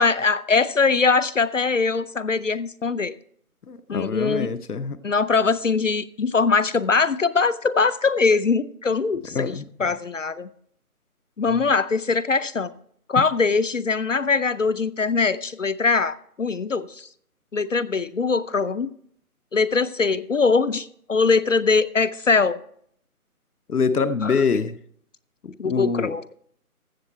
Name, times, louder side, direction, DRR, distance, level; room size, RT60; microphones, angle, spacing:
voice 1, 0.0-3.2 3.9-4.5 5.0-9.5 9.8-10.5 11.4-12.7 13.1-17.1 17.5-18.9 19.5-22.6 24.2-24.4 25.6-26.3, left 4 dB, 60° left, 0.6 m, -22 dB
voice 2, 3.7-5.0 9.3-9.9 11.5-11.7 23.7-24.8 25.4-26.2, left 5 dB, 80° left, 0.9 m, -25 dB
14.5 x 7.0 x 4.4 m
figure-of-eight pair, 170°, 45 cm